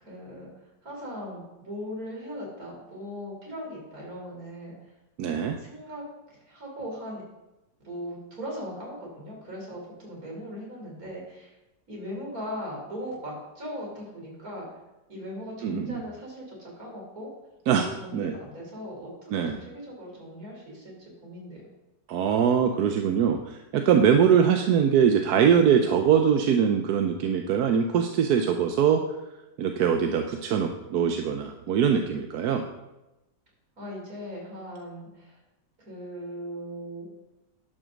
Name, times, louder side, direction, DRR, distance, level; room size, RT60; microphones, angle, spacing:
voice 1, 0.0-4.7 5.6-7.2 7.8-11.5 11.9-14.7 15.1-17.3 17.7-21.6 33.8-35.4 35.8-37.1, equal, 50° right, -2 dB, 4.0 m, -39 dB
voice 2, 5.2-5.6 15.6-16.0 17.7-17.8 18.1-18.3 19.3-19.6 22.1-29.0 29.6-32.6, right 7 dB, 65° right, 5 dB, 1.1 m, -22 dB
11.0 x 6.3 x 6.4 m, 0.98 s
omnidirectional pair, 1.9 m